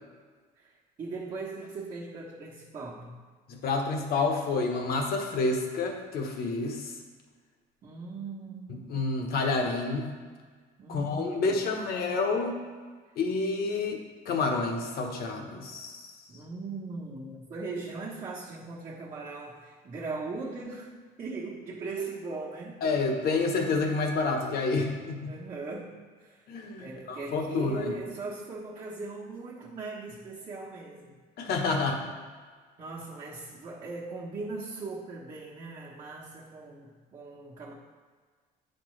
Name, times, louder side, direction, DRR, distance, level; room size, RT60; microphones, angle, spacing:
voice 1, 0.6-3.1 7.8-8.8 10.8-11.7 16.3-22.8 25.3-26.5 26.8-31.2 32.8-37.7, right 3 dB, 45° right, -7 dB, 1.1 m, -39 dB
voice 2, 3.5-6.9 8.9-10.1 10.9-12.6 13.2-16.1 22.8-25.3 26.5-27.9 31.4-32.0, left 3 dB, 65° left, 2 dB, 1.1 m, -29 dB
9.5 x 4.4 x 3.2 m, 1.5 s
cardioid pair, 110°, 17 cm